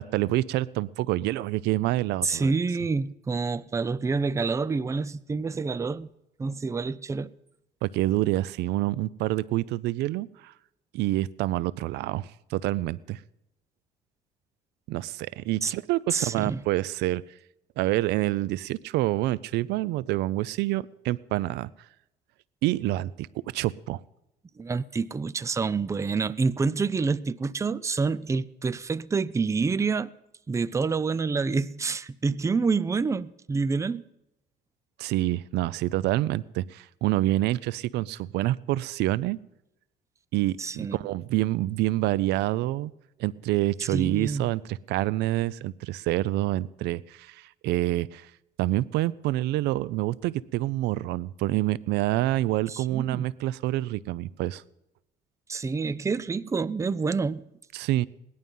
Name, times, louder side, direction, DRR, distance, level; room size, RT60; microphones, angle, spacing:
voice 1, 0.0-2.5 7.8-10.5 10.9-13.2 14.9-17.2 17.8-21.7 22.6-24.0 35.0-39.4 40.3-42.9 43.2-48.3 48.6-54.6 57.7-58.1, right 16 dB, 85° right, 0.5 m, -27 dB
voice 2, 2.2-6.1 6.4-7.3 15.6-15.7 16.1-16.6 24.6-30.1 30.5-34.0 40.6-41.0 43.8-44.5 52.7-53.3 55.5-57.4, right 4 dB, 15° right, 0.5 m, -27 dB
18.0 x 11.5 x 5.5 m
cardioid pair, 110°, 17 cm